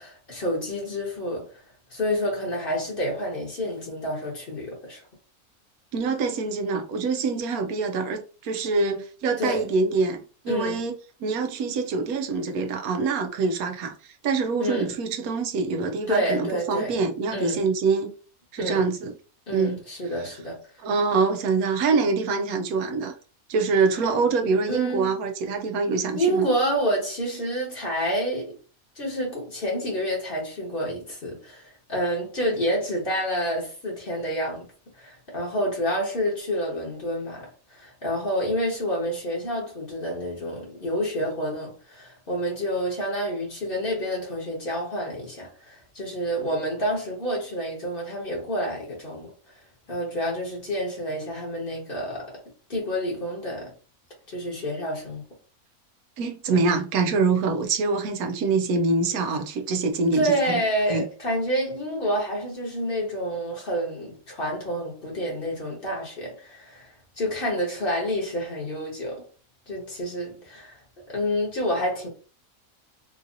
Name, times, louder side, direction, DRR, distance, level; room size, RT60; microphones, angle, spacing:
voice 1, 0.0-1.5 1.9-5.0 9.4-9.7 10.5-10.8 14.6-14.9 16.1-17.0 17.3-17.6 18.6-18.8 19.5-20.6 24.7-25.1 26.1-28.5 29.0-34.7 35.0-49.3 49.9-52.4 52.7-53.7 54.3-55.2 60.1-66.9 67.2-69.2 69.7-70.8 71.1-72.1, equal, 40° left, 1.4 m, -28 dB
voice 2, 5.9-10.9 11.2-13.9 14.2-18.1 18.5-19.1 19.5-19.8 20.2-20.3 20.8-23.1 23.5-26.5 56.2-60.6 60.9-61.0, right 4 dB, 85° right, 1.1 m, -25 dB
3.8 x 2.7 x 2.5 m
omnidirectional pair, 1.5 m